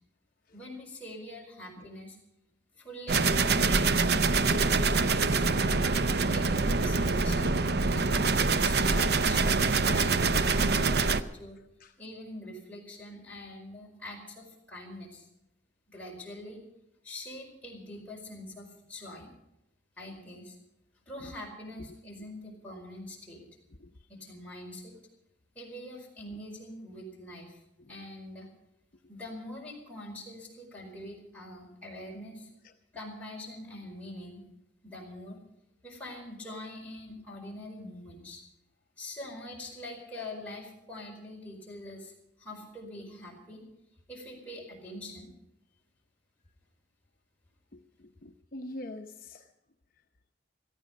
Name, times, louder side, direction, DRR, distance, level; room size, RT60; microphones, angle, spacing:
voice 1, 0.5-2.2 2.8-5.8 6.3-7.5 7.9-8.3 8.6-11.6 12.0-15.3 15.9-16.6 17.0-19.3 20.0-20.6 21.1-23.4 24.1-24.9 25.5-27.6 27.9-28.5 29.1-32.5 32.9-34.4 34.8-35.4 35.8-38.4 39.0-42.1 42.4-43.6 44.1-45.3, left 1 dB, 10° left, -3 dB, 4.9 m, -44 dB
sound 1, 3.1-11.2, right 4 dB, 60° right, 0.7 m, -25 dB
voice 2, 47.7-49.5, left 2 dB, 50° left, 4 dB, 0.8 m, -45 dB
18.0 x 13.5 x 5.2 m, 0.87 s
head